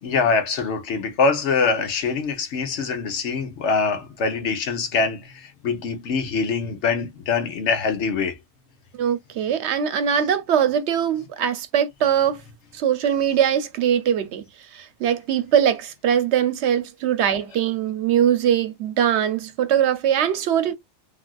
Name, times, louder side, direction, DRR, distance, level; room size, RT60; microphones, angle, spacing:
voice 1, 0.0-8.4, left 4 dB, 80° left, 1.1 m, -24 dB
voice 2, 8.9-12.4 12.7-14.4 14.7-20.7, right 9 dB, 75° right, 0.9 m, -21 dB
3.4 x 2.4 x 2.2 m
omnidirectional pair, 1.2 m